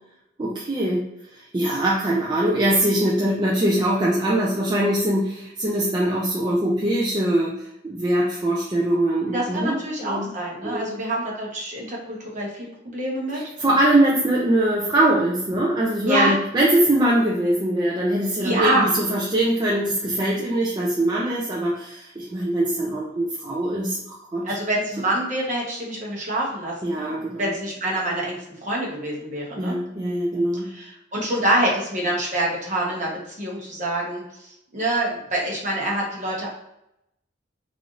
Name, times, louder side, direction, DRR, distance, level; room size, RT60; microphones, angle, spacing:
voice 1, 0.4-1.1 1.3-7.5 7.8-10.3 10.6-10.9 13.3-24.4 26.8-27.5 29.6-30.7, right 1 dB, 25° right, -5 dB, 0.4 m, -22 dB
voice 2, 9.3-13.4 16.0-16.4 18.4-18.9 24.4-27.0 27.3-29.8 30.7-34.2 34.7-36.5, right 1 dB, 40° right, -4 dB, 0.9 m, -25 dB
3.3 x 2.5 x 2.4 m, 0.84 s
head